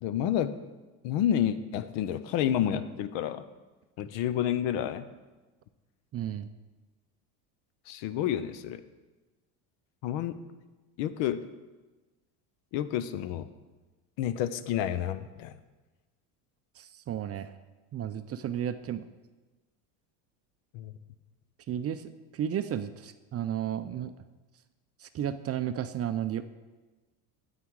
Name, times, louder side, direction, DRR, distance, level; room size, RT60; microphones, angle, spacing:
voice 1, 0.0-0.5 1.0-3.5 4.0-5.1 7.9-8.8 10.0-10.4 11.0-11.4 12.7-13.5 14.2-15.5 20.7-20.9, left 10 dB, 65° left, 13 dB, 0.8 m, -29 dB
voice 2, 6.1-6.5 16.8-17.5 17.9-19.1 21.7-24.1 25.0-26.5, right 10 dB, 35° right, 11 dB, 0.4 m, -33 dB
9.3 x 8.3 x 4.7 m, 1.2 s
supercardioid pair, 85°, 47 cm